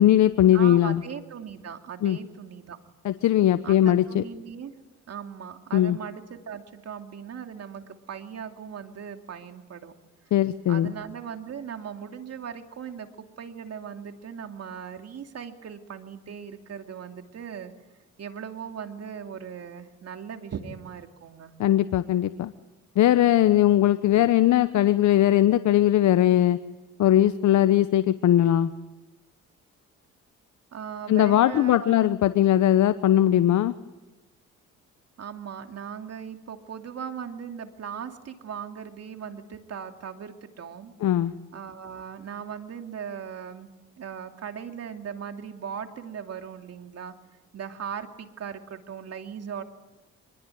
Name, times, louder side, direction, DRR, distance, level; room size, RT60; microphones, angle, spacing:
voice 1, 0.0-1.0 2.0-2.2 3.0-4.2 5.7-6.0 10.3-10.9 21.6-22.5 23.0-26.6 27.0-28.7 31.1-33.7 41.0-41.3, left 12 dB, 70° left, 12 dB, 1.0 m, -20 dB
voice 2, 0.5-2.8 3.6-4.7 5.1-9.9 10.7-17.7 18.2-21.5 30.7-32.1 35.2-40.9 41.5-43.7 44.0-47.2 47.5-49.6, right 7 dB, 55° right, 5 dB, 2.9 m, -38 dB
26.0 x 22.0 x 9.4 m, 1.1 s
cardioid pair, 90°, 30 cm